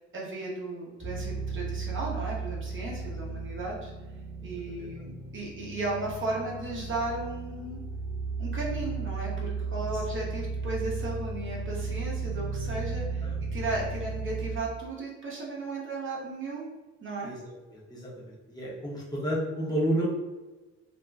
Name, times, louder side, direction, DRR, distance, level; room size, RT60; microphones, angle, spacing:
voice 1, 0.0-3.9 4.4-7.8 8.4-16.6 17.0-17.3, right 2 dB, 40° right, -3 dB, 0.8 m, -35 dB
sound 1, 1.0-14.6, right 4 dB, 10° right, 0.8 m, -35 dB
voice 2, 17.7-20.0, right 1 dB, 15° left, -6 dB, 0.9 m, -31 dB
2.5 x 2.1 x 3.2 m, 1.2 s
cardioid pair, 90°, 30 cm